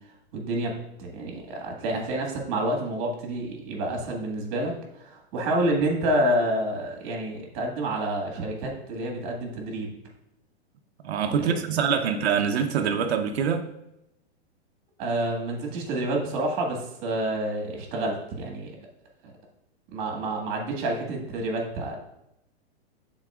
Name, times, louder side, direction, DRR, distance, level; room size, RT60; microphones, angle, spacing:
voice 1, 0.3-10.0 11.4-12.0 15.0-18.7 19.9-22.0, right 1 dB, 35° right, 1 dB, 1.8 m, -28 dB
voice 2, 11.0-13.7, right 7 dB, 70° right, 4 dB, 0.8 m, -25 dB
11.0 x 4.1 x 2.4 m, 0.84 s
hypercardioid pair, 155°, 33 cm